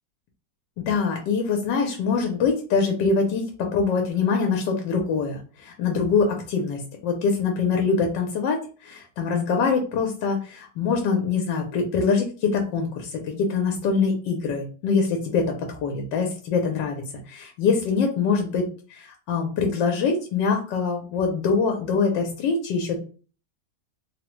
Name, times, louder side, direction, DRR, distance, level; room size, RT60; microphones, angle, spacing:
voice 1, 0.8-23.0, left 5 dB, 80° left, 3 dB, 1.3 m, -24 dB
3.5 x 2.0 x 3.0 m, 0.37 s
omnidirectional pair, 1.9 m